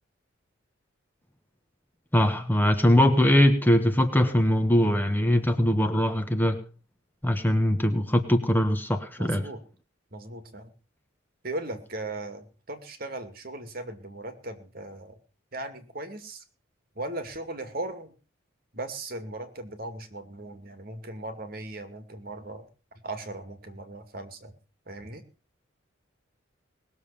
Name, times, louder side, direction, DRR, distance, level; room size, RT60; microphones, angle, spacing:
voice 1, 2.1-6.6 7.2-9.4, left 1 dB, 10° left, 7 dB, 1.2 m, -22 dB
voice 2, 9.2-9.6 10.1-10.7 11.4-15.2 15.5-16.4 17.0-18.1 18.7-22.7 23.0-24.5 24.9-25.2, right 2 dB, 45° right, 8 dB, 2.4 m, -38 dB
19.5 x 7.2 x 6.9 m, 0.37 s
head